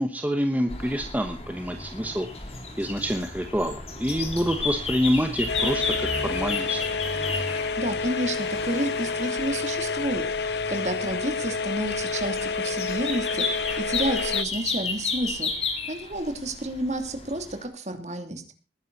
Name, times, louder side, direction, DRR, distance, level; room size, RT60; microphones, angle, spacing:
voice 1, 0.0-2.3 2.8-6.8, equal, 10° right, 5 dB, 1.1 m, -27 dB
sound 1, 0.7-17.6, left 3 dB, 35° left, 3.1 m, -33 dB
sound 2, 5.5-14.4, left 4 dB, 75° left, 0.7 m, -29 dB
voice 2, 7.8-15.5 15.9-18.4, right 1 dB, 40° right, 6 dB, 2.9 m, -30 dB
20.0 x 10.5 x 4.1 m, 0.35 s
head